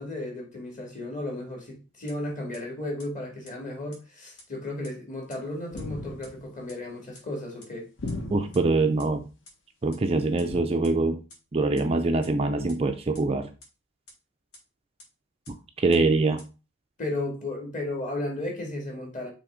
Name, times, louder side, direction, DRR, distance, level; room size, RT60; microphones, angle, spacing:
voice 1, 0.0-7.9 17.0-19.3, left 1 dB, 35° left, 2.0 m, -34 dB
sound 1, 2.1-2.2 2.5-2.6 3.0-3.1 3.4-3.5 3.9-4.0 4.4-4.5 4.8-4.9 5.3-5.4 5.8-5.9 6.2-6.3 6.7-6.8 7.1-7.2 7.6-7.7 8.1-8.2 8.5-8.6 9.0-9.1 9.4-9.5 9.9-10.0 10.4-10.5 10.8-10.9 11.3-11.4 11.7-11.8 12.2-12.3 12.7-12.8 13.1-13.2 13.6-13.7 14.1-14.2 14.5-14.6 15.0-15.1 15.4-15.5 15.9-16.0 16.4-16.5, left 2 dB, 80° left, 2.9 m, -48 dB
sound 2, 5.7-6.5 8.0-8.8 10.5-10.6, left 2 dB, 55° left, 1.2 m, -36 dB
voice 2, 8.3-9.2 9.8-11.2 11.5-13.5 15.5-16.4, right 3 dB, 25° right, 0.4 m, -24 dB
6.0 x 3.4 x 5.0 m
head